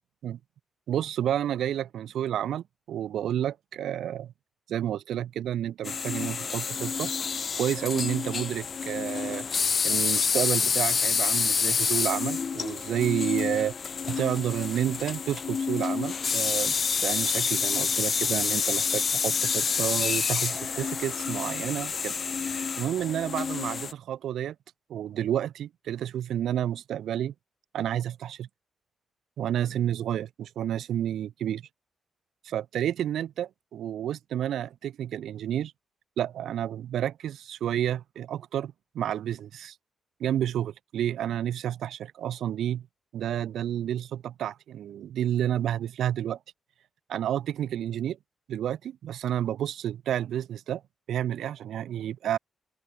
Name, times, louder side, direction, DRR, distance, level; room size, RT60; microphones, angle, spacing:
voice 1, 0.9-4.3 4.7-7.1 7.6-9.5 9.8-13.7 14.1-16.7 17.0-22.2 22.4-24.5 24.9-27.3 27.7-28.5 29.4-31.6 32.4-35.7 36.2-39.7 40.2-42.9 43.1-46.4 47.1-48.2 48.5-50.8 51.1-52.4, right 10 dB, 80° right, 3.1 m, -30 dB
sound 1, 5.8-23.9, left 6 dB, 40° left, 3.9 m, -28 dB
open air
wide cardioid pair, 140°, 0 cm